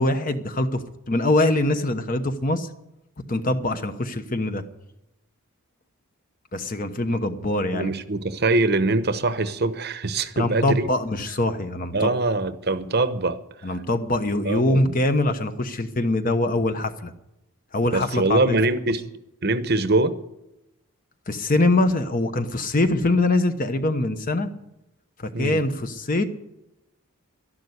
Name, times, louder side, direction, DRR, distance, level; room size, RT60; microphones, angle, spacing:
voice 1, 0.0-2.7 3.3-4.6 6.5-7.9 10.4-12.1 13.6-17.1 17.7-18.4 21.3-24.5 25.2-26.2, left 2 dB, 40° left, 1.0 m, -23 dB
voice 2, 7.7-10.9 11.9-13.4 14.4-15.0 17.9-19.1 19.4-20.1 25.3-25.6, right 2 dB, 45° right, 0.9 m, -23 dB
12.5 x 11.5 x 8.1 m
head